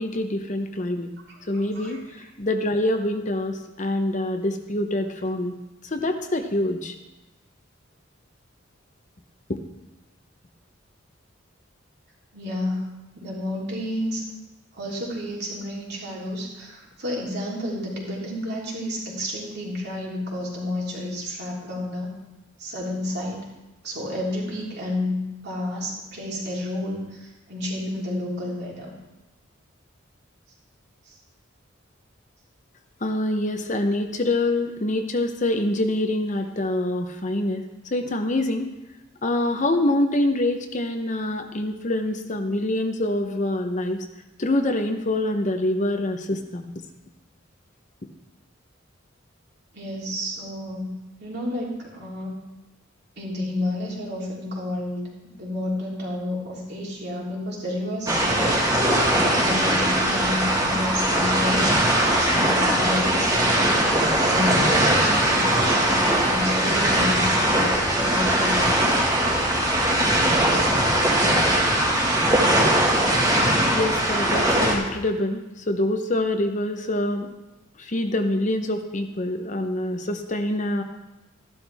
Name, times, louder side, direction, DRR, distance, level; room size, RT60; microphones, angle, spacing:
voice 1, 0.0-1.1 1.5-5.6 5.8-7.0 33.0-37.6 37.9-38.7 39.2-44.0 44.4-46.7 73.7-77.3 77.8-80.8, left 1 dB, 40° left, 6 dB, 0.8 m, -25 dB
voice 2, 1.3-2.0 12.3-14.2 14.7-22.1 22.6-23.4 23.8-28.9 31.1-31.2 49.7-50.9 51.2-52.3 53.2-58.6 59.3-63.5 64.1-68.7, left 1 dB, 55° right, -4 dB, 3.4 m, -31 dB
waves closeup, 58.1-74.7, right 1 dB, 20° right, 1.8 m, -20 dB
14.0 x 11.5 x 3.5 m, 1.0 s
head